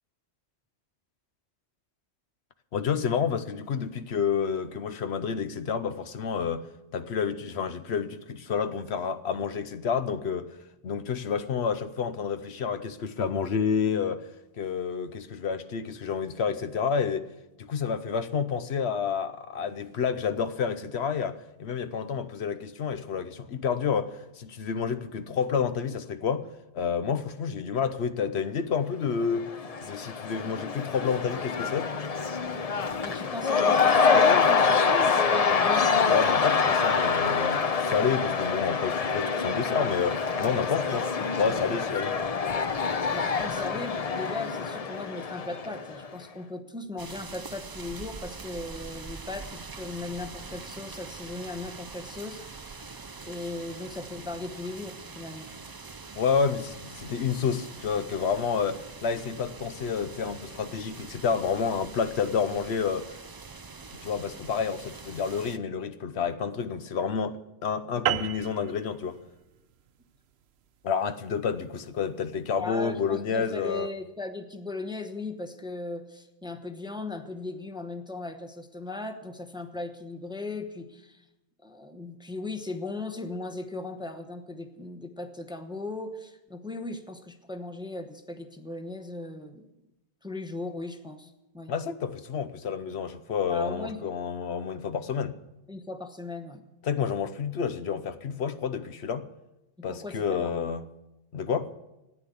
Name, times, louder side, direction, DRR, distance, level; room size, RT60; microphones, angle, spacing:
voice 1, 2.7-6.6 6.9-10.5 10.8-14.3 14.6-17.2 17.6-26.5 26.7-29.5 29.8-31.9 36.1-41.1 41.4-42.2 56.2-63.2 64.0-69.2 70.8-73.9 91.7-95.4 96.8-99.3 99.8-100.8 101.3-101.7, left 6 dB, 75° left, 1.0 m, -29 dB
Cheering / Crowd, 29.2-46.1, left 5 dB, 40° left, 0.7 m, -26 dB
voice 2, 33.0-35.9 43.1-52.4 53.2-55.5 67.9-68.0 72.5-81.2 81.6-89.7 90.2-91.7 93.5-94.1 95.7-96.6 99.8-100.5, left 2 dB, 5° right, 0.9 m, -37 dB
sound 1, 47.0-65.6, right 4 dB, 30° right, 0.4 m, -44 dB
sound 2, 68.1-72.8, right 11 dB, 70° right, 0.9 m, -35 dB
14.0 x 10.0 x 8.3 m
omnidirectional pair, 1.1 m